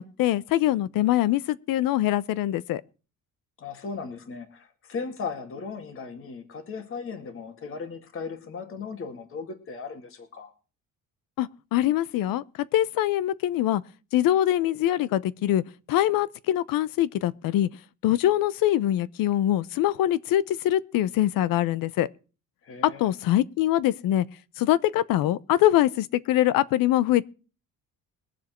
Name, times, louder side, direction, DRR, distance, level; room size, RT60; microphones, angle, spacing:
voice 1, 0.0-2.8 11.4-12.4 12.7-13.8 14.1-15.6 15.9-17.7 18.0-22.1 22.8-24.2 24.6-27.3, left 13 dB, 80° left, 0.8 m, -23 dB
voice 2, 3.6-10.5 22.6-23.1, left 5 dB, 40° left, 2.3 m, -37 dB
22.0 x 7.4 x 4.5 m
cardioid pair, 155°, 33 cm